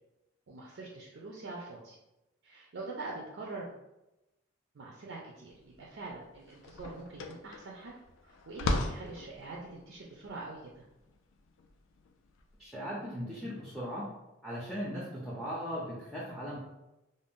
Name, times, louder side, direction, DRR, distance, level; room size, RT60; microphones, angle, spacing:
voice 1, 0.5-2.0 2.4-3.7 4.7-7.9 8.2-10.8, right 3 dB, 65° right, -2 dB, 0.4 m, -44 dB
sound 1, 5.6-5.7 6.1-12.5, left 2 dB, 70° left, 0.3 m, -38 dB
voice 2, 12.6-14.1 14.4-16.6, equal, ahead, -6 dB, 0.4 m, -38 dB
2.5 x 2.1 x 3.5 m, 0.95 s
head